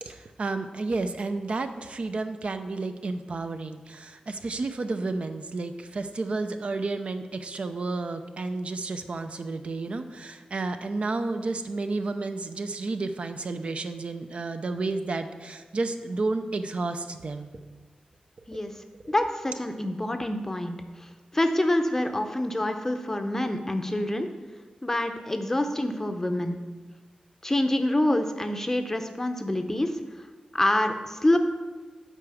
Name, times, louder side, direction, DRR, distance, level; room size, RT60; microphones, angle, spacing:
voice 1, 0.0-17.5, right 3 dB, 55° right, 8 dB, 0.6 m, -31 dB
voice 2, 19.1-20.7 21.3-24.3 24.8-26.6 27.4-30.0 30.5-31.4, left 1 dB, 15° left, 6 dB, 0.7 m, -26 dB
8.4 x 4.8 x 7.0 m, 1.3 s
wide cardioid pair, 105°, 2 cm